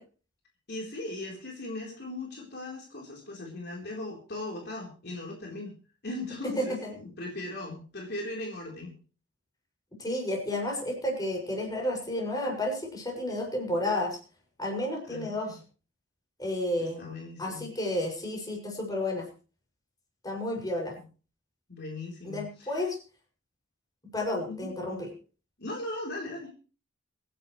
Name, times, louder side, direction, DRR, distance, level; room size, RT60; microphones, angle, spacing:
voice 1, 0.7-5.7 6.0-8.9 15.1-15.6 16.8-17.7 21.7-22.8 24.5-24.7 25.6-26.5, left 2 dB, 55° left, -1 dB, 4.1 m, -38 dB
voice 2, 6.4-6.9 10.0-14.2 14.6-15.6 16.4-17.1 17.4-19.3 20.2-20.9 22.2-23.0 24.1-25.1, left 1 dB, 20° left, 0 dB, 6.5 m, -31 dB
25.0 x 11.0 x 3.3 m, 0.37 s
head